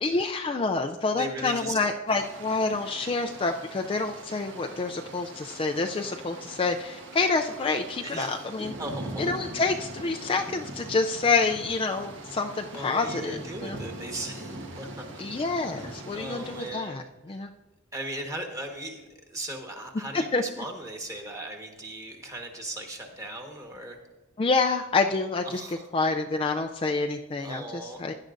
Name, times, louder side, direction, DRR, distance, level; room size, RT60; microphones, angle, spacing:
voice 1, 0.0-8.7 9.2-13.8 15.2-17.5 20.1-20.4 24.4-25.6 25.9-27.6 28.0-28.1, left 3 dB, 25° left, 4 dB, 0.4 m, -27 dB
voice 2, 1.1-1.8 8.0-8.4 8.8-9.3 12.7-15.1 15.6-17.5 17.9-24.0 25.4-25.9 27.4-28.0, right 1 dB, 15° right, 2 dB, 1.4 m, -38 dB
sound 1, 2.1-16.7, right 1 dB, 65° right, 1.3 m, -42 dB
16.0 x 10.5 x 2.6 m, 1.1 s
head